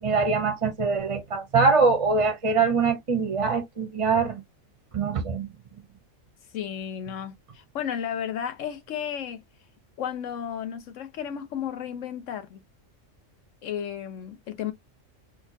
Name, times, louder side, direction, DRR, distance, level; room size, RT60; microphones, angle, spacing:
voice 1, 0.0-4.4 4.9-5.5, right 4 dB, 35° right, 0.6 m, -23 dB
voice 2, 6.5-9.4 10.0-12.6 13.6-14.7, left 9 dB, 85° left, 1.2 m, -33 dB
4.2 x 2.4 x 2.6 m
omnidirectional pair, 1.3 m